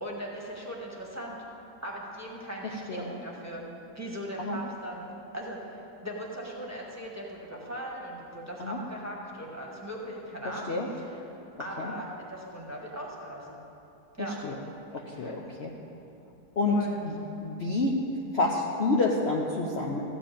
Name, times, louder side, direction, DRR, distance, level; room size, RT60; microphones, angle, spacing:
voice 1, 0.0-1.4 1.8-3.6 3.9-11.2 11.6-13.6 14.2-14.4 14.9-15.3 16.7-17.0, equal, 10° right, -3 dB, 1.4 m, -39 dB
voice 2, 15.2-15.7 16.6-16.7 17.0-17.1 17.4-17.9 18.3-20.0, left 3 dB, 50° left, -1 dB, 0.9 m, -28 dB
13.5 x 5.1 x 8.8 m, 2.9 s
omnidirectional pair, 1.7 m